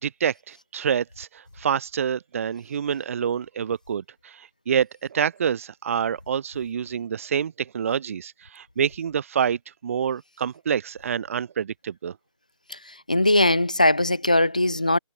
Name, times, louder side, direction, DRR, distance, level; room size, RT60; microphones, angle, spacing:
voice 1, 0.0-12.1, right 8 dB, 25° right, 1.0 m, -27 dB
voice 2, 13.1-15.0, left 1 dB, 15° left, 0.4 m, -20 dB
figure-of-eight pair, 170°, 17 cm